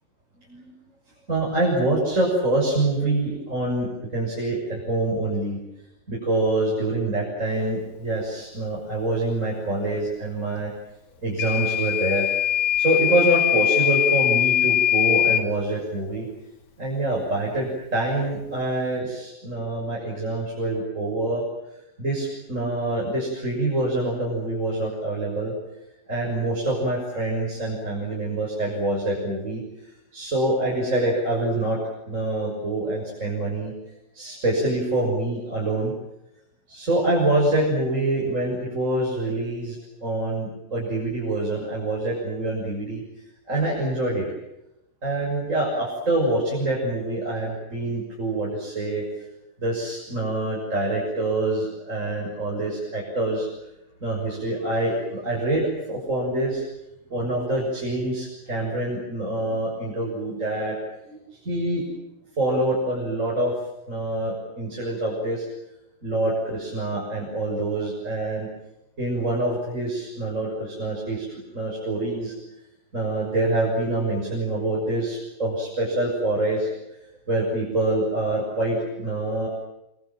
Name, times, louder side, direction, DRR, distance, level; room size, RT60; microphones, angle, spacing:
voice 1, 1.3-5.6 6.1-10.7 11.2-12.2 12.8-16.3 16.8-21.4 22.0-25.5 26.1-29.6 30.1-31.8 32.1-33.7 34.1-35.9 36.7-43.0 43.5-44.3 45.0-49.0 49.6-53.5 54.0-56.6 57.1-60.8 61.0-61.8 62.4-63.5 63.9-65.5 66.0-68.5 69.0-71.3 71.5-72.3 72.9-76.7 77.3-79.5, right 2 dB, 20° right, -3 dB, 6.7 m, -25 dB
Microwave oven / Alarm, 11.4-15.5, left 11 dB, 60° left, 3.4 m, -21 dB
27.5 x 24.5 x 7.6 m, 0.87 s
omnidirectional pair, 4.1 m